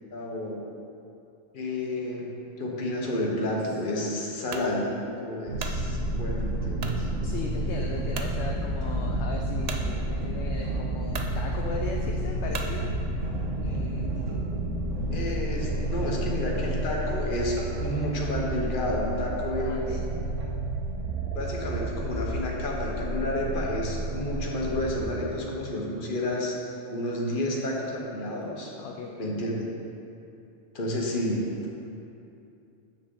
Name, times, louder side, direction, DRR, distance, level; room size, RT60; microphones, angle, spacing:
voice 1, 0.1-0.6 1.5-2.3 2.6-7.1 13.6-14.1 15.1-20.0 21.3-26.5 26.9-28.7 29.2-29.6 30.7-31.5, left 1 dB, 45° left, -2 dB, 1.1 m, -30 dB
sound 1, 4.5-4.7 5.3-5.8 6.8-7.0 7.6-7.7 8.1-8.3 9.7-9.9 10.6-10.7 11.1-11.3 12.5-12.8, right 4 dB, 60° right, 0.4 m, -36 dB
sound 2, 5.5-25.0, right 1 dB, 75° right, 1.3 m, -30 dB
voice 2, 7.2-12.9 19.6-20.0 28.8-29.1, left 4 dB, 70° left, 1 dB, 0.8 m, -37 dB
7.6 x 6.4 x 3.7 m, 2.7 s
omnidirectional pair, 1.3 m